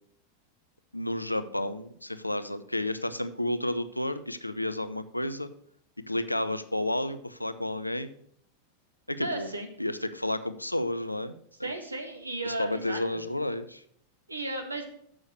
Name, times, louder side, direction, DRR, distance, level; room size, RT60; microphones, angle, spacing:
voice 1, 0.9-5.5 6.0-8.2 9.1-9.5 9.8-11.7 12.4-13.8, left 1 dB, 85° left, 12 dB, 0.5 m, -31 dB
voice 2, 9.2-9.7 11.6-13.2 14.3-14.8, right 2 dB, 80° right, 4 dB, 1.5 m, -34 dB
7.5 x 6.3 x 6.1 m, 0.67 s
figure-of-eight pair, 90°, 0 cm